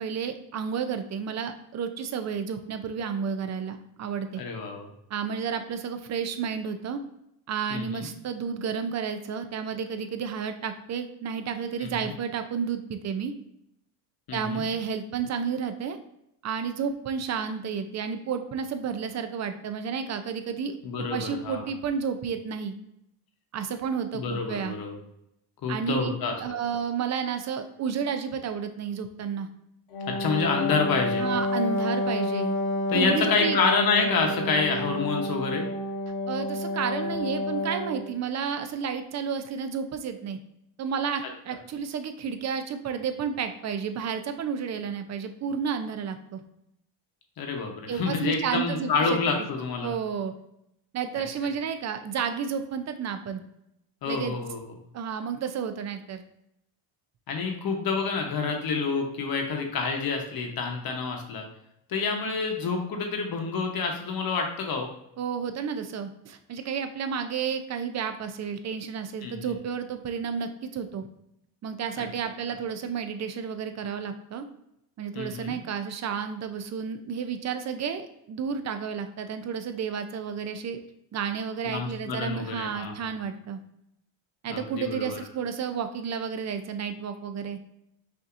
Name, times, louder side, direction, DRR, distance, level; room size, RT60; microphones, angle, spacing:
voice 1, 0.0-4.4 5.1-7.0 7.5-13.3 14.3-16.0 16.4-22.8 23.5-24.8 25.7-29.5 31.2-32.5 32.9-33.6 36.3-40.4 40.8-46.4 47.9-49.2 49.8-50.3 50.9-53.4 54.1-54.4 54.9-56.2 65.2-71.1 71.6-74.5 75.0-80.8 81.1-83.6 84.4-87.6, right 6 dB, 35° right, 8 dB, 0.5 m, -31 dB
voice 2, 4.4-4.9 7.7-8.1 11.8-12.1 14.3-14.7 20.8-21.7 24.1-25.0 25.6-26.3 30.2-31.2 32.9-35.7 47.4-49.9 54.0-54.6 57.3-61.4 61.9-64.9 69.2-69.5 72.0-72.1 75.1-75.6 81.6-83.1 84.5-85.2, left 4 dB, 45° left, 3 dB, 1.0 m, -28 dB
Wind instrument woodwind instrument, 29.9-38.1, left 1 dB, 85° left, 1.2 m, -29 dB
5.7 x 2.8 x 2.5 m, 0.79 s
cardioid pair, 110°, 48 cm